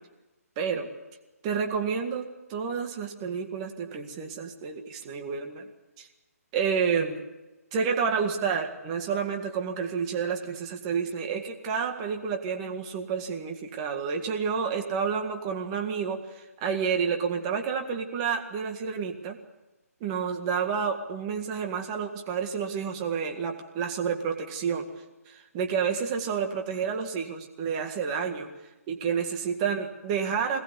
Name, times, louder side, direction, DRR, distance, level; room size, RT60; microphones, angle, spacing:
voice 1, 0.6-0.9 1.4-5.6 6.0-6.1 6.5-7.2 7.7-19.4 20.0-24.9 25.3-28.5 28.9-30.6, right 6 dB, 25° right, 4 dB, 1.9 m, -29 dB
22.0 x 18.5 x 8.4 m, 1.1 s
hypercardioid pair, 155°, 9 cm